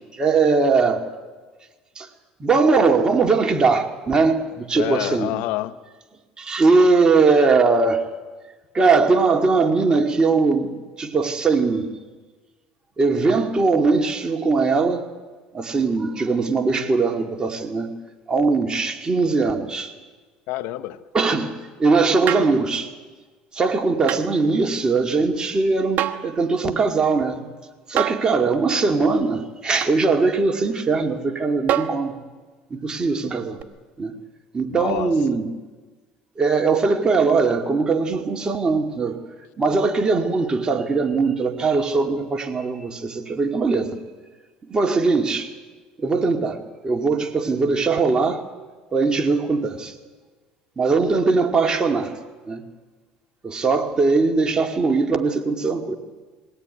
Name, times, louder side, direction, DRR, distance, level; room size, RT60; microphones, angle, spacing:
voice 1, 0.1-1.0 2.0-2.1 2.4-5.3 6.4-8.1 8.7-10.7 11.0-11.9 13.0-15.0 15.5-17.9 18.3-19.9 21.1-22.9 23.5-27.4 27.9-32.2 32.7-33.6 34.0-34.1 34.5-35.5 36.4-39.2 39.6-44.0 44.7-45.5 46.0-46.6 46.8-48.4 48.9-49.9 50.8-52.1 52.5-52.6 53.4-56.0, right 4 dB, 25° right, 4 dB, 2.3 m, -20 dB
voice 2, 4.7-5.8 20.5-21.0 34.7-35.1, left 15 dB, 70° left, 14 dB, 0.8 m, -28 dB
sound 1, 22.3-22.6 24.1-24.3 26.0-26.3 28.0-28.3 29.8-30.0 31.7-32.0 33.6-33.7, right 11 dB, 50° right, 1.2 m, -25 dB
21.0 x 17.5 x 9.7 m, 1.4 s
supercardioid pair, 90°, 3 cm